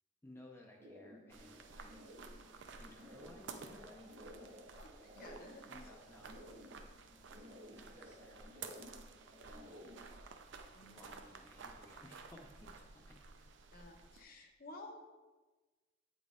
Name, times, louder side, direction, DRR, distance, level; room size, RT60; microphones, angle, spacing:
voice 1, 0.2-2.2 2.8-4.1 5.7-6.3 7.3-8.8 9.4-10.1 10.8-13.2, left 1 dB, 15° left, 0 dB, 0.5 m, -59 dB
sound 1, 0.8-10.2, equal, 35° right, 1.0 m, -56 dB
sound 2, 1.3-14.2, right 4 dB, 65° right, 0.5 m, -54 dB
voice 2, 4.8-5.9 10.7-11.0 13.7-15.0, left 2 dB, 50° left, 3 dB, 0.8 m, -54 dB
8.0 x 4.0 x 3.6 m, 1.3 s
head